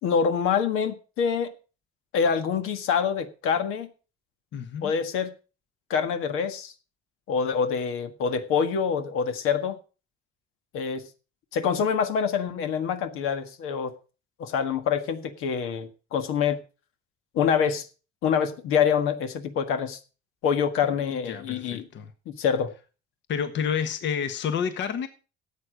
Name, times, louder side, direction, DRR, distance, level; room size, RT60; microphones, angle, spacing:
voice 1, 0.0-1.5 2.1-3.9 4.8-5.3 5.9-6.7 7.3-9.8 10.7-11.0 11.5-13.9 14.4-16.6 17.3-17.8 18.2-20.0 20.4-21.9 22.2-22.7, left 7 dB, 85° left, 1.6 m, -26 dB
voice 2, 4.5-4.9 21.2-22.1 23.3-25.1, left 7 dB, 60° left, 1.4 m, -29 dB
13.0 x 8.4 x 5.1 m
cardioid pair, 120°, 21 cm